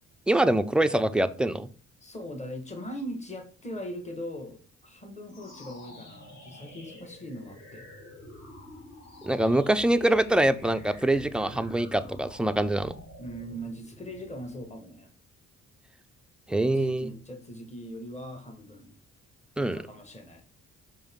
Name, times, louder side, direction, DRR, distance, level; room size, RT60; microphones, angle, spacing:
voice 1, 0.3-1.7 9.2-12.9 16.5-17.1 19.6-19.8, right 1 dB, 5° right, 11 dB, 0.3 m, -24 dB
voice 2, 2.0-7.9 13.2-15.1 16.6-18.9 19.6-20.4, equal, 20° left, 4 dB, 1.5 m, -40 dB
sound 1, 5.2-14.7, left 1 dB, 60° left, 3.0 m, -48 dB
5.3 x 5.2 x 3.6 m, 0.42 s
cardioid pair, 90°, 30 cm